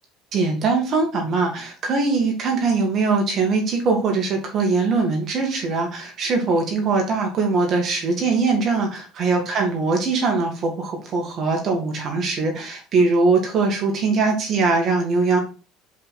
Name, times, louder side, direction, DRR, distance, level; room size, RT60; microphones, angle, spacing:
voice 1, 0.3-15.4, right 4 dB, 30° right, 2 dB, 1.9 m, -21 dB
5.5 x 5.0 x 4.1 m, 0.34 s
cardioid pair, 180°, 0 cm